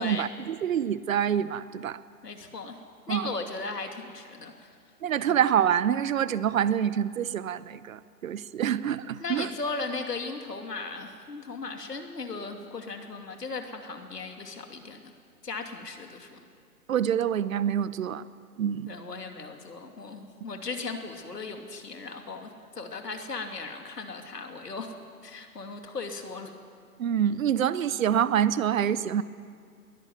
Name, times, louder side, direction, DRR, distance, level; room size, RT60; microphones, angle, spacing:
voice 1, 0.0-2.0 3.1-3.3 5.0-9.5 16.9-18.2 18.6-18.9 27.0-29.2, right 9 dB, 60° right, 17 dB, 0.9 m, -26 dB
voice 2, 2.2-2.8 3.1-4.7 5.3-5.4 9.2-15.1 15.4-16.4 18.9-24.9 25.2-26.5, left 3 dB, 85° left, 4 dB, 2.8 m, -37 dB
21.5 x 14.0 x 9.4 m, 2.2 s
hypercardioid pair, 135°, 47 cm